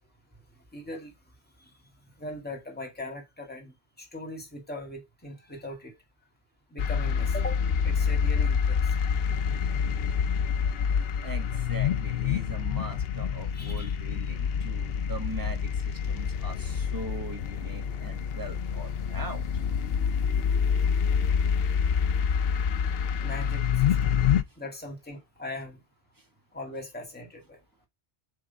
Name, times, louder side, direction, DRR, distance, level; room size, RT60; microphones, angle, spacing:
voice 1, 0.7-1.1 1.6-1.7 2.2-5.9 6.7-7.6 7.8-8.9 13.3-14.0 23.2-24.2 24.6-25.8 26.5-27.6, left 1 dB, 10° left, 1.9 m, -40 dB
sound 1, 6.8-24.4, left 7 dB, 65° left, 0.8 m, -27 dB
voice 2, 11.0-19.6 26.2-26.3, right 2 dB, 20° right, 1.2 m, -41 dB
7.5 x 3.7 x 3.9 m
omnidirectional pair, 1.2 m